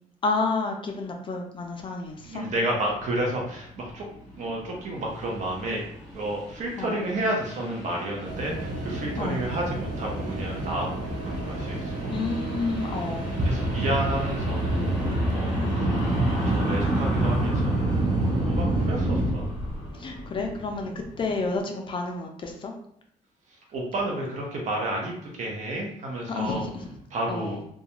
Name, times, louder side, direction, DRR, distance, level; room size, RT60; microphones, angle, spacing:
voice 1, 0.2-2.5 6.8-7.0 9.2-9.5 12.1-13.5 15.5-16.0 18.7-19.1 20.0-20.9 21.2-22.7 26.3-26.9 27.3-27.6, left 3 dB, 40° left, 2 dB, 0.4 m, -30 dB
sound 1, 2.0-21.6, equal, 5° left, 1.2 m, -38 dB
voice 2, 2.2-4.0 4.3-5.8 6.1-12.2 12.9-13.0 13.4-15.0 15.3-15.9 16.3-18.0 18.4-19.5 23.7-26.6 27.1-27.6, right 1 dB, 60° right, -1 dB, 0.8 m, -31 dB
sound 2, 8.2-19.3, right 1 dB, 30° right, 0.5 m, -27 dB
2.4 x 2.2 x 2.9 m, 0.67 s
cardioid pair, 135°, 14 cm